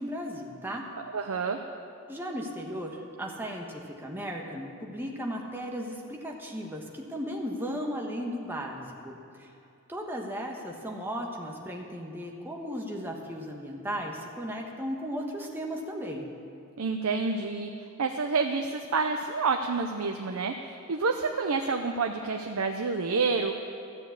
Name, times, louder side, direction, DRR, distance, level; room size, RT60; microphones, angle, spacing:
voice 1, 0.0-0.9 2.1-9.5 9.9-16.3, equal, 10° right, 0 dB, 1.2 m, -36 dB
voice 2, 1.0-1.6 16.8-17.7 18.0-23.5, right 4 dB, 80° right, 4 dB, 0.6 m, -28 dB
13.5 x 7.1 x 8.2 m, 2.7 s
head